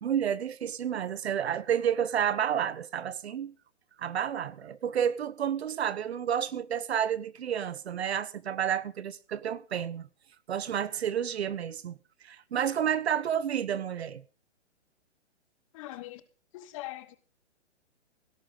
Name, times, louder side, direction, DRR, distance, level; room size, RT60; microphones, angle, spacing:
voice 1, 0.0-3.5 4.0-10.1 10.5-12.0 12.2-14.2, right 9 dB, 65° right, 1.2 m, -30 dB
voice 2, 15.7-16.2 16.5-17.2, left 16 dB, 30° left, 1.1 m, -41 dB
17.0 x 11.5 x 4.0 m
hypercardioid pair, 150°, 35 cm